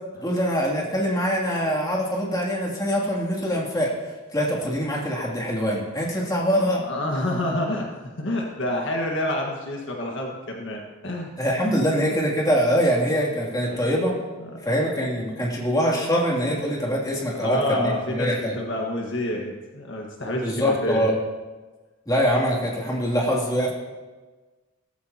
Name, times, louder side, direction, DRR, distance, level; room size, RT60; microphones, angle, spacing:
voice 1, 0.2-3.9 4.3-6.8 11.4-14.1 14.6-18.5 20.4-21.1 22.1-23.7, equal, 20° left, -4 dB, 2.8 m, -23 dB
voice 2, 6.8-7.9 8.2-11.3 13.7-13.9 14.4-14.5 17.3-21.1, left 1 dB, 60° left, 0 dB, 1.7 m, -28 dB
17.0 x 15.0 x 3.0 m, 1.3 s
head